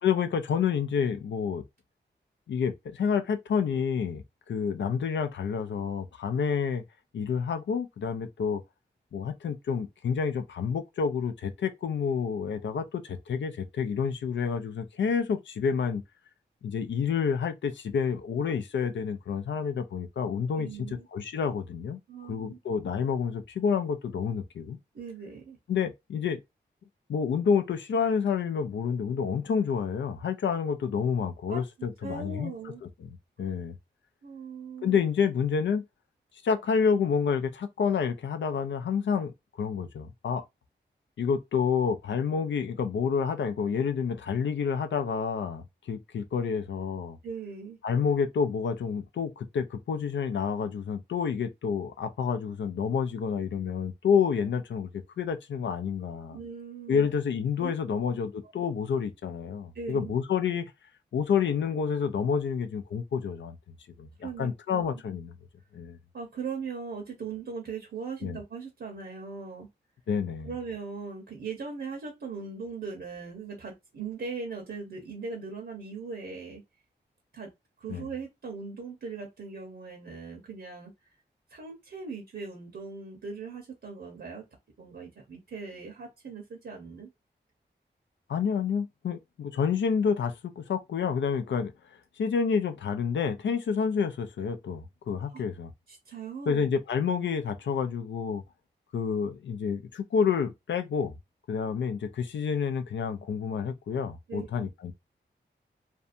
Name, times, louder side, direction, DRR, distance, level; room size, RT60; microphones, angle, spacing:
voice 1, 0.0-1.6 2.5-6.8 7.1-8.6 9.1-16.0 16.6-20.7 21.1-22.0 22.3-24.8 25.7-26.4 27.1-32.5 33.0-33.1 33.4-33.8 34.8-35.8 36.4-40.4 41.2-47.2 47.8-56.4 56.9-60.7 61.1-63.6 64.0-65.4 65.7-66.0 68.2-68.4 70.1-70.5 77.9-78.1 88.3-91.7 92.2-95.7 96.5-98.4 98.9-101.1 101.5-104.9, left 6 dB, 75° left, 0.4 m, -29 dB
voice 2, 20.5-21.1 22.1-22.6 24.9-25.6 31.5-31.6 32.0-32.8 34.2-35.0 47.2-47.8 56.3-57.1 57.6-57.7 59.7-60.2 64.2-64.9 66.1-69.7 70.4-76.6 77.3-77.5 77.8-80.9 81.5-84.4 84.8-87.1 95.3-95.4 95.9-96.7 104.3-104.7, right 5 dB, 75° right, 0.9 m, -39 dB
2.6 x 2.2 x 2.6 m
cardioid pair, 45°, 19 cm